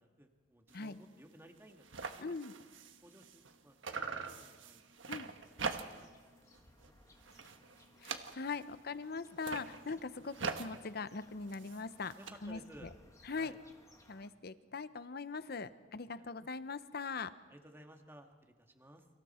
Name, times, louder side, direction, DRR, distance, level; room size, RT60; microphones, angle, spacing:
voice 1, 0.0-2.3 3.0-4.9 5.4-5.7 5.9-7.8 12.2-12.9 13.3-13.6 16.2-16.3 17.5-19.1, right 1 dB, 15° right, 4 dB, 1.9 m, -59 dB
sound 1, 0.7-0.9 1.3-1.4 1.6-3.6 3.8-6.2 6.5-6.9 7.2-8.7 9.3-12.3, right 5 dB, 85° right, 1.3 m, -43 dB
voice 2, 2.2-2.5 5.1-5.3 8.0-12.2 12.4-12.9 13.3-13.5 14.1-17.3, left 4 dB, 55° left, 13 dB, 0.8 m, -41 dB
sound 2, 5.4-14.3, left 1 dB, 15° left, 1.7 m, -64 dB
29.0 x 25.0 x 4.4 m, 1.4 s
head